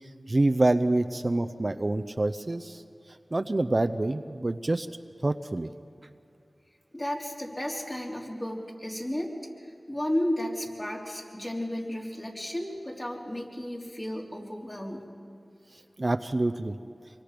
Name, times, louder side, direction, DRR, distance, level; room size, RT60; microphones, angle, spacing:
voice 1, 0.3-2.8 3.3-4.9 5.2-5.7 16.0-16.7, right 2 dB, 45° right, 8 dB, 0.7 m, -26 dB
voice 2, 6.9-9.3 9.9-15.1, left 1 dB, 30° left, -2 dB, 3.9 m, -33 dB
25.0 x 24.0 x 5.2 m, 2.3 s
cardioid pair, 40°, 0 cm